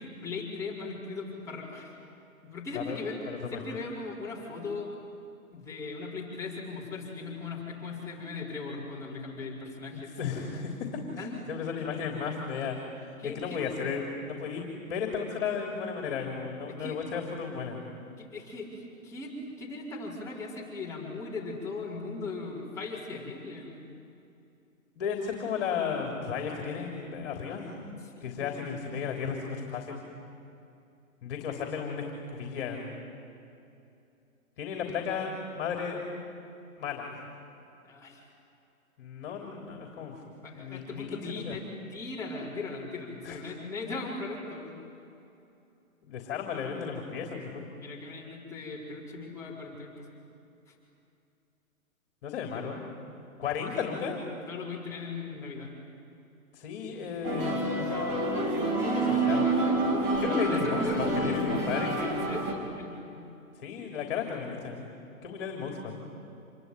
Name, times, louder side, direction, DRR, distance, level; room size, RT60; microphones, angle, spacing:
voice 1, 0.0-1.9 2.4-3.1 3.5-4.9 5.5-10.3 11.2-11.4 13.2-13.6 16.7-17.0 18.2-23.9 28.0-28.7 34.8-34.9 37.8-38.2 39.3-39.4 40.4-44.8 47.8-50.1 50.7-50.8 53.4-53.7 54.5-55.7 60.2-61.7 62.0-63.3, left 3 dB, 5° left, -6 dB, 4.5 m, -39 dB
voice 2, 3.3-3.6 9.9-10.9 11.1-17.8 23.3-23.4 24.9-27.8 28.2-30.0 31.2-32.9 34.6-36.0 36.8-37.1 39.0-40.2 40.5-41.6 43.2-43.4 46.0-47.7 52.2-52.8 53.4-54.2 56.5-57.7 58.9-59.5 60.2-60.9 61.2-62.0 63.5-64.9 65.2-66.0, left 6 dB, 40° left, 2 dB, 3.5 m, -34 dB
sound 1, 57.2-62.5, right 2 dB, 25° right, 3.1 m, -28 dB
27.5 x 22.0 x 9.4 m, 2.7 s
hypercardioid pair, 155°, 42 cm